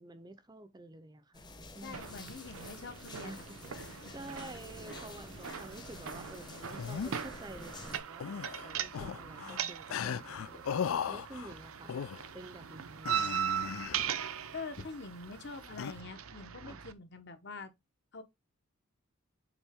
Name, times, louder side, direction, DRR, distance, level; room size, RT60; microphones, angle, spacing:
voice 1, 0.0-1.4 1.7-2.3 3.2-12.0 12.3-13.4 16.6-16.8, right 2 dB, 20° right, 0.6 m, -50 dB
sound 1, 1.3-8.0, left 2 dB, 20° left, 0.9 m, -49 dB
voice 2, 1.8-3.5 3.7-4.2 4.9-5.1 5.4-5.6 9.4-9.8 14.5-17.7 18.1-18.2, left 4 dB, 50° left, 1.1 m, -46 dB
sound 2, 1.9-16.9, right 9 dB, 70° right, 0.6 m, -40 dB
sound 3, 6.5-7.2 8.2-9.6 9.9-11.5 11.9-12.3 13.1-14.2 15.8-16.0, left 7 dB, 70° left, 0.4 m, -37 dB
7.2 x 4.0 x 3.5 m
head